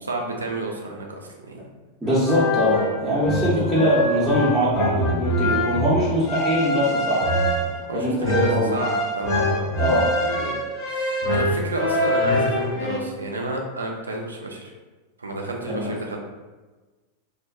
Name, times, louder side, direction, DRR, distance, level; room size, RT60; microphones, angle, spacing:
voice 1, 0.0-1.6 7.9-9.7 10.1-10.5 10.9-14.7 15.2-16.2, right 2 dB, 75° right, 1 dB, 0.4 m, -30 dB
sound 1, 2.0-13.0, left 1 dB, 40° left, 0.5 m, -24 dB
voice 2, 2.0-7.3 7.9-8.8 9.8-10.1 15.7-15.9, equal, 5° right, -11 dB, 0.6 m, -22 dB
sound 2, 3.4-8.7, left 1 dB, 80° left, 1.1 m, -41 dB
2.5 x 2.1 x 2.4 m, 1.3 s
figure-of-eight pair, 90°, 0 cm